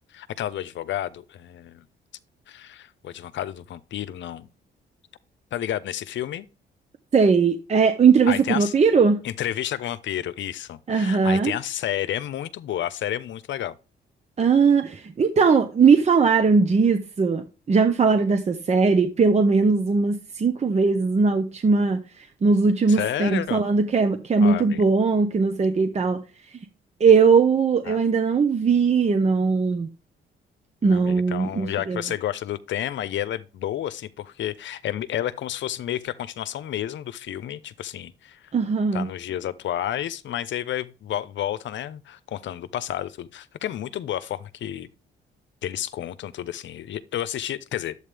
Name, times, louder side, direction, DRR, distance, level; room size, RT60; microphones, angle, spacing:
voice 1, 0.1-1.8 2.5-4.5 5.5-6.5 8.3-8.7 9.2-13.8 22.9-23.6 24.4-24.8 27.9-28.0 30.8-38.4 38.9-44.9 45.6-48.0, left 11 dB, 70° left, 0.8 m, -31 dB
voice 2, 7.1-9.2 10.9-11.5 14.4-26.2 27.0-29.9 30.8-32.0 38.5-39.1, right 5 dB, 35° right, 0.9 m, -19 dB
11.0 x 8.2 x 3.4 m
cardioid pair, 90°, 20 cm